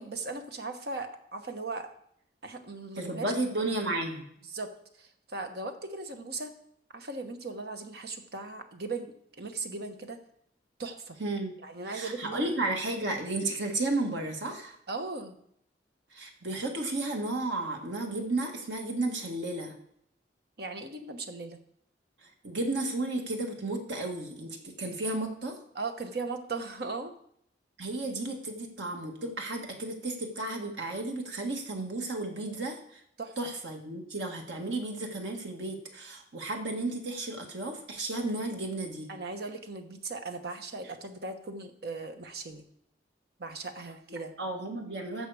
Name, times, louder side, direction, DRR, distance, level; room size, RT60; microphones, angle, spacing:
voice 1, 0.0-1.9 2.4-3.2 4.5-4.7 5.0-6.5 6.9-10.2 10.8-11.2 11.6-12.5 14.9-15.3 20.6-21.6 25.7-27.1 33.2-33.3 39.1-42.6 43.4-44.3, right 3 dB, 60° right, 6 dB, 1.1 m, -38 dB
voice 2, 2.9-4.2 11.2-11.6 11.9-14.8 16.1-19.7 22.2-25.6 27.8-33.0 33.4-39.1 44.1-45.3, right 2 dB, 80° right, 2 dB, 1.7 m, -33 dB
14.5 x 5.6 x 4.8 m, 0.71 s
head